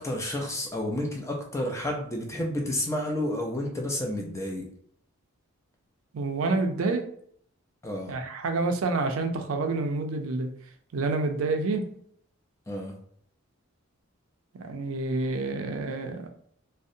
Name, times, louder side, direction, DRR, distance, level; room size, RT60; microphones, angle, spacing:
voice 1, 0.0-4.7 7.8-8.2 12.7-13.0, left 1 dB, 15° left, 1 dB, 0.3 m, -30 dB
voice 2, 6.1-7.1 8.1-10.5 10.9-11.9 14.6-16.3, right 3 dB, 70° right, 5 dB, 0.4 m, -28 dB
2.6 x 2.0 x 2.5 m, 0.64 s
head